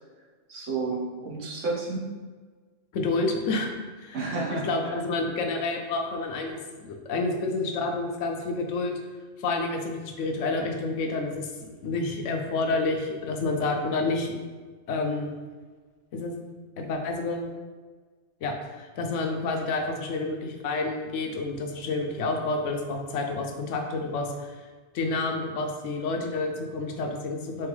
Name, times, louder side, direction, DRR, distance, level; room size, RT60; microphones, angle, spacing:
voice 1, 0.5-2.1 4.1-5.0, right 3 dB, 75° right, -4 dB, 1.3 m, -31 dB
voice 2, 2.9-3.7 4.0-9.0 9.4-14.4 14.9-15.4 16.1-16.3 16.8-17.4 18.4-24.6 24.9-27.7, left 3 dB, 75° left, 3 dB, 0.9 m, -29 dB
4.0 x 3.4 x 3.2 m, 1.4 s
omnidirectional pair, 1.3 m